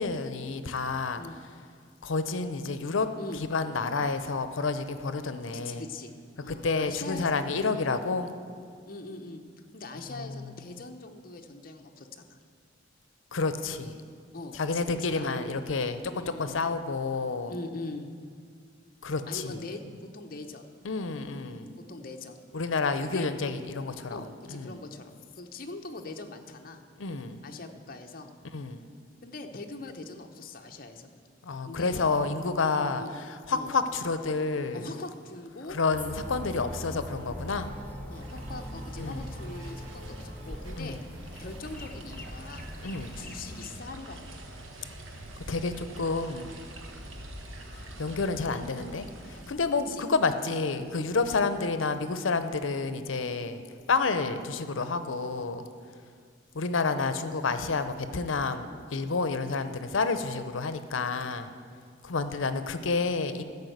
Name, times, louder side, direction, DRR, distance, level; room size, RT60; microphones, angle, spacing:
voice 1, 0.0-1.2 2.0-3.1 3.5-5.8 6.5-8.3 10.1-10.4 13.3-14.0 14.5-17.5 19.0-19.6 20.8-21.7 22.5-24.8 27.0-27.4 28.5-28.8 31.4-34.9 35.7-37.7 39.0-39.2 40.8-41.0 42.8-43.1 45.5-46.5 47.7-53.6 53.9-55.7 56.5-61.5 62.0-63.4, left 4 dB, 85° left, 10 dB, 0.7 m, -29 dB
voice 2, 5.5-6.1 6.4-7.8 8.8-9.4 9.7-12.4 14.3-15.3 16.0-16.6 17.5-18.1 19.3-20.7 21.6-22.4 23.0-23.3 24.1-26.8 27.4-28.3 29.2-31.1 31.7-32.0 32.8-33.1 33.5-33.7 34.7-35.8 38.1-41.0 41.4-42.7 43.1-44.3 47.0-47.2 49.9-50.1, left 3 dB, 45° left, 4 dB, 0.8 m, -42 dB
sound 1, 35.7-40.8, right 2 dB, 40° right, 0.9 m, -50 dB
sound 2, 35.9-43.7, equal, 10° left, 0.7 m, -41 dB
sound 3, 38.2-49.5, right 1 dB, 90° right, 1.2 m, -45 dB
13.5 x 5.5 x 7.9 m, 2.1 s
head